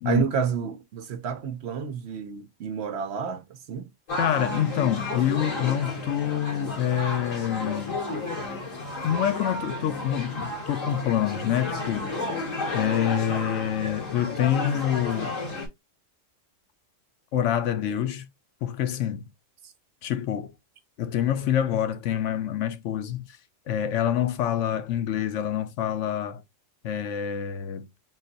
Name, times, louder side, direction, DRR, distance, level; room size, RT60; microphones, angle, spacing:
voice 1, 0.0-3.9 13.5-13.6 19.6-19.7, right 7 dB, 65° right, 0.8 m, -30 dB
sound 1, 4.1-15.7, left 2 dB, 90° left, 2.1 m, -32 dB
voice 2, 4.2-8.0 9.0-12.1 12.7-15.3 17.3-18.3 18.6-19.3 20.0-20.5 21.0-23.4 23.7-26.4 26.8-27.9, left 10 dB, 75° left, 0.9 m, -26 dB
3.8 x 2.6 x 3.8 m
omnidirectional pair, 1.3 m